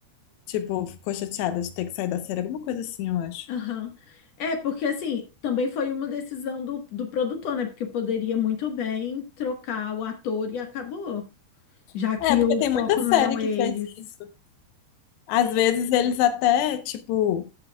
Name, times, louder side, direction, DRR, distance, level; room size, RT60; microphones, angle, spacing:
voice 1, 0.5-3.5 12.2-13.7 15.3-17.5, left 11 dB, 85° left, 3.0 m, -25 dB
voice 2, 3.5-11.3 11.9-13.9 15.4-15.8, left 7 dB, 60° left, 1.9 m, -28 dB
14.0 x 8.0 x 2.3 m
omnidirectional pair, 4.8 m